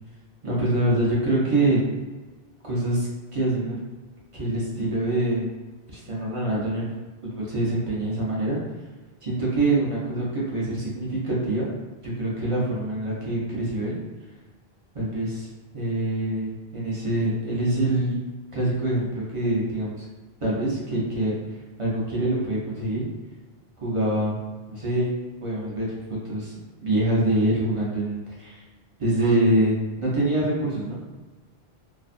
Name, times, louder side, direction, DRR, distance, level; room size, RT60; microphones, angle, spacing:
voice 1, 0.4-1.8 2.6-3.8 4.3-5.5 5.9-6.9 7.2-8.6 9.2-11.7 12.0-14.0 14.9-15.5 15.7-18.2 18.5-20.0 20.4-21.4 21.8-23.1 23.8-24.4 24.7-25.1 25.4-28.6 29.0-31.0, right 1 dB, 35° right, -6 dB, 0.7 m, -25 dB
2.5 x 2.2 x 2.5 m, 1.3 s
omnidirectional pair, 1.1 m